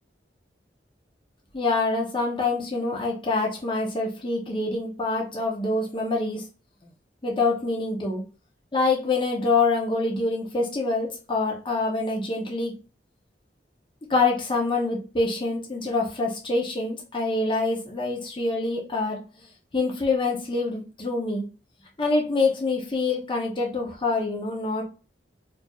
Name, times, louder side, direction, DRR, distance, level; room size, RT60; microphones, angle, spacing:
voice 1, 1.5-6.4 7.2-8.2 8.7-12.7 14.1-19.2 19.7-21.5 22.0-24.8, left 3 dB, 30° left, -1 dB, 0.7 m, -25 dB
4.4 x 2.6 x 2.3 m, 0.33 s
head